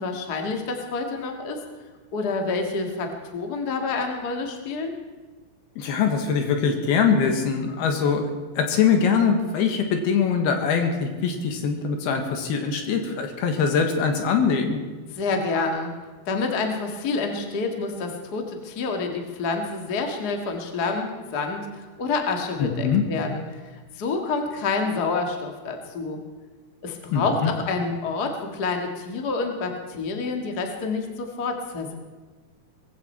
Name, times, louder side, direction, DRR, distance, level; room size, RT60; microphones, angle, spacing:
voice 1, 0.0-1.6 2.1-4.9 15.1-15.9 16.2-23.4 24.0-26.2 26.8-31.9, left 4 dB, 45° left, 3 dB, 1.3 m, -28 dB
voice 2, 5.8-14.8 22.6-23.0 27.1-27.5, left 6 dB, 75° left, 5 dB, 3.4 m, -23 dB
20.0 x 15.5 x 4.5 m, 1.3 s
omnidirectional pair, 4.7 m